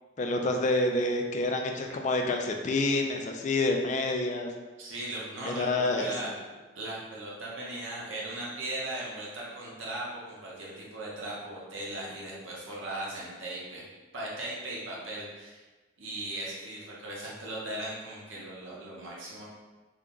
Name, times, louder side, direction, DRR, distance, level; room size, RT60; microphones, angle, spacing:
voice 1, 0.2-4.5 5.5-6.1, left 2 dB, 40° left, 3 dB, 0.4 m, -28 dB
voice 2, 4.8-6.4 6.7-13.8 14.1-15.6 16.0-19.4, right 1 dB, 80° right, -4 dB, 0.9 m, -38 dB
3.5 x 2.2 x 3.7 m, 1.2 s
head